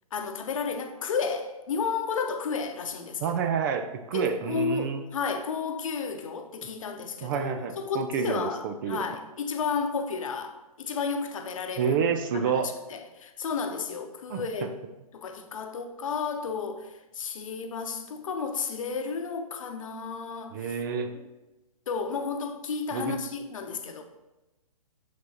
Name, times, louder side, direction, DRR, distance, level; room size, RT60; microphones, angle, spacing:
voice 1, 0.1-3.3 4.1-11.9 12.3-12.6 12.9-14.7 15.1-20.7 21.1-21.2 21.9-24.0, left 5 dB, 55° left, 0.9 m, -32 dB
voice 2, 3.2-5.0 7.2-9.1 11.8-12.7 14.3-14.4 20.5-21.1 22.9-23.2, right 6 dB, 35° right, 0.5 m, -28 dB
6.8 x 5.9 x 2.9 m
figure-of-eight pair, 130°, 20 cm